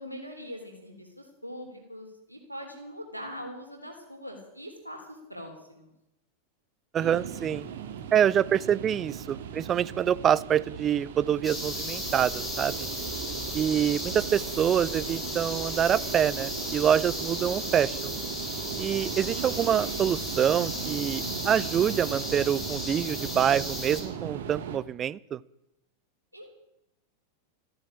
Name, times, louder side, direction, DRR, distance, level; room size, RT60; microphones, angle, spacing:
voice 1, 0.0-5.9 26.3-26.5, equal, 90° right, 3 dB, 3.6 m, -42 dB
voice 2, 6.9-7.7 8.1-12.9 13.5-18.1 18.8-25.4, right 9 dB, 25° right, 20 dB, 0.5 m, -26 dB
sound 1, 7.0-24.8, right 8 dB, 55° right, 1.9 m, -38 dB
sound 2, 11.4-24.0, left 1 dB, 10° left, 4.5 m, -35 dB
14.5 x 10.5 x 8.9 m, 0.84 s
figure-of-eight pair, 90°, 0 cm